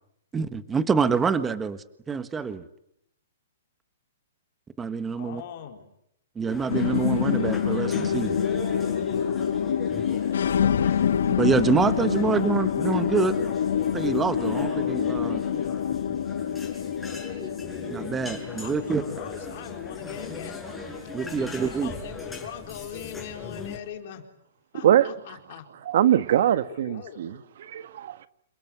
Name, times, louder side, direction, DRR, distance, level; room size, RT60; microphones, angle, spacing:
voice 1, 0.3-2.6 4.8-5.4 6.3-8.4 11.4-13.3 13.9-15.4 17.9-19.0 21.1-21.9, right 5 dB, 10° right, 1.5 m, -26 dB
voice 2, 5.2-5.9 12.2-12.4 18.6-20.6 21.3-24.3 24.7-25.7 26.5-27.9, left 10 dB, 45° left, 4.4 m, -41 dB
sound 1, 6.5-23.8, left 3 dB, 5° left, 6.3 m, -39 dB
sound 2, 6.7-21.3, left 8 dB, 70° left, 1.2 m, -27 dB
voice 3, 25.8-28.3, right 11 dB, 55° right, 1.5 m, -22 dB
28.0 x 21.5 x 9.5 m
hypercardioid pair, 155°, 0 cm